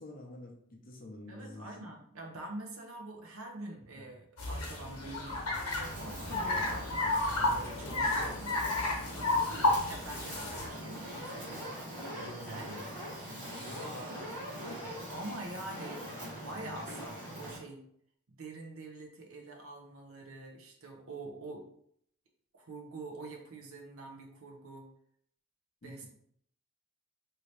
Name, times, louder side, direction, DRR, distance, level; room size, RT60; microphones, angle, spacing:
voice 1, 0.0-1.9 3.9-4.0 7.9-8.2 9.6-9.8 13.6-14.0 25.8-26.1, left 1 dB, 40° left, 1 dB, 0.6 m, -49 dB
voice 2, 1.3-8.5 8.8-13.4 13.7-14.3 15.1-16.0 16.3-17.8 18.3-21.6 22.5-24.9 25.8-26.1, right 2 dB, 65° right, 1 dB, 0.7 m, -45 dB
sound 1, 4.4-10.7, left 2 dB, 75° left, 1.0 m, -32 dB
Fire, 5.8-17.6, equal, 35° right, 1.4 m, -43 dB
2.8 x 2.8 x 3.1 m, 0.68 s
head